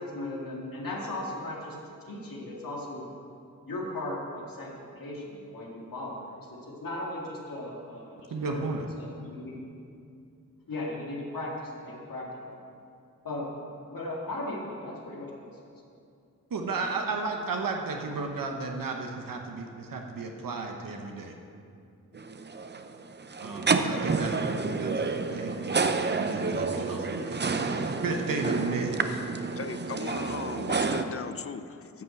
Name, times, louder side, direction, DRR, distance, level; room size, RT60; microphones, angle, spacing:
voice 1, 0.0-1.8 2.0-3.0 3.7-8.7 8.9-9.5 10.7-12.5 13.2-13.5 13.9-15.7, left 1 dB, 80° left, -3 dB, 2.1 m, -37 dB
voice 2, 8.3-8.9 16.5-21.3 23.4-29.2, right 3 dB, 75° right, 2 dB, 0.9 m, -34 dB
sound 1, 22.1-31.0, right 4 dB, 30° right, 0.5 m, -29 dB
voice 3, 29.6-32.0, left 6 dB, 45° left, 12 dB, 0.5 m, -38 dB
10.5 x 5.7 x 7.7 m, 2.5 s
wide cardioid pair, 75°, 34 cm